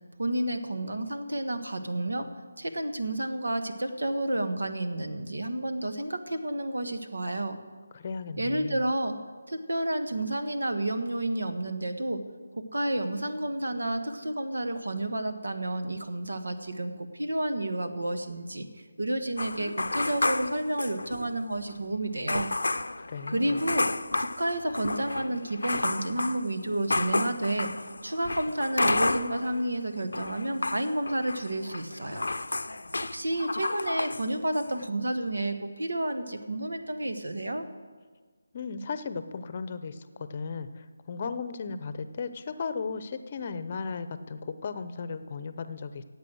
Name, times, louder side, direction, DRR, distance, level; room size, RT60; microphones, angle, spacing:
voice 1, 0.2-2.3 2.6-7.6 8.4-9.2 9.5-12.2 12.6-18.7 19.0-22.5 23.3-23.9 24.2-27.7 28.0-32.2 33.1-37.6, right 1 dB, 85° right, 8 dB, 1.4 m, -30 dB
voice 2, 7.9-8.8 23.0-23.6 38.5-46.0, left 5 dB, 35° left, 12 dB, 0.7 m, -36 dB
sound 1, 19.4-21.4 21.7-21.8 22.3-29.7 29.9-34.3 34.5-34.9, left 2 dB, 80° left, 0.6 m, -31 dB
16.0 x 8.3 x 6.3 m, 1.5 s
figure-of-eight pair, 165°, 0 cm